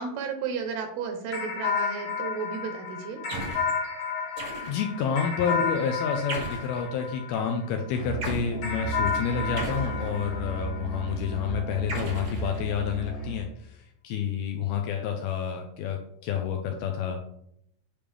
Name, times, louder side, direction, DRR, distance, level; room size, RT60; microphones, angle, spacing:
voice 1, 0.0-3.2, right 5 dB, 75° right, 6 dB, 2.6 m, -33 dB
sound 1, 1.3-7.9 8.6-11.4, left 5 dB, 60° left, 2.8 m, -32 dB
sound 2, 3.3-3.7 4.4-5.0 6.3-6.8 8.2-8.5 9.6-10.4 11.9-13.0, right 2 dB, 55° right, 0.7 m, -36 dB
voice 2, 4.7-16.0 16.2-17.2, left 7 dB, 85° left, 4 dB, 2.2 m, -29 dB
Musical instrument, 7.9-13.4, right 3 dB, 40° left, 1.0 m, -35 dB
8.8 x 5.1 x 3.4 m, 0.73 s
omnidirectional pair, 5.0 m